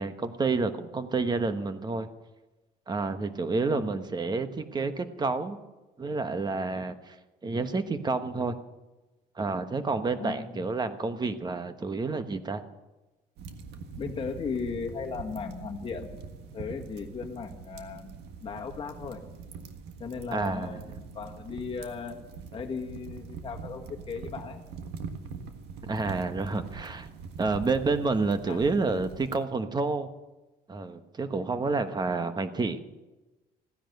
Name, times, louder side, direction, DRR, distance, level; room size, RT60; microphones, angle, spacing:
voice 1, 0.0-2.1 2.9-5.6 6.0-7.1 7.4-8.6 9.4-12.6 20.3-20.8 25.9-27.1 27.4-30.1 30.7-32.8, right 3 dB, 25° right, 10 dB, 1.2 m, -29 dB
voice 2, 10.2-10.7 14.0-16.1 16.5-18.1 18.4-19.2 20.0-22.2 22.5-24.6 28.5-28.6, left 5 dB, 35° left, 2 dB, 1.6 m, -36 dB
sound 1, 13.4-29.4, right 5 dB, 80° right, 1.6 m, -43 dB
15.5 x 10.0 x 7.9 m, 1.1 s
cardioid pair, 110°, 17 cm